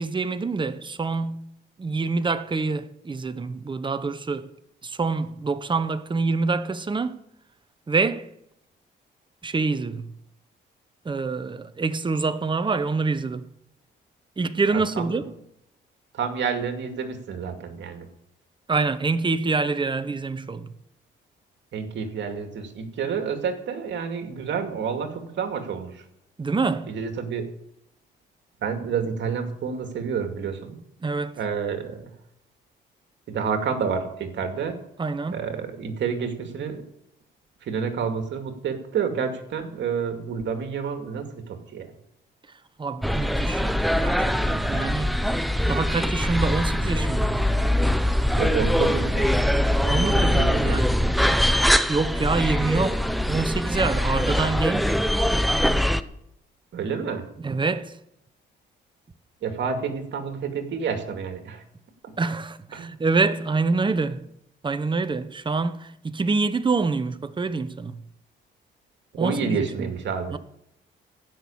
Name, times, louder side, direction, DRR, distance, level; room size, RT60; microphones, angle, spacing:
voice 1, 0.0-1.5 1.8-4.5 4.8-7.2 7.9-8.3 9.4-10.1 11.0-13.5 14.4-15.3 18.7-20.7 26.4-26.9 31.0-31.4 35.0-35.4 42.8-45.2 45.7-47.4 49.9-51.0 51.9-55.0 57.4-58.0 62.2-64.2 64.6-68.0 69.2-69.9 70.3-70.4, right 4 dB, 25° right, 1.0 m, -26 dB
voice 2, 14.7-15.2 16.1-18.1 21.7-26.0 26.9-27.5 28.6-30.8 31.4-32.1 33.3-34.8 35.3-36.8 37.6-41.9 48.4-49.3 49.8-50.8 56.7-57.3 59.4-61.6 62.0-62.1 62.7-62.9 69.1-70.4, right 6 dB, 65° right, 2.4 m, -29 dB
sound 1, 43.0-56.0, equal, ahead, 0.7 m, -22 dB
15.5 x 6.2 x 8.6 m
cardioid pair, 90°, 20 cm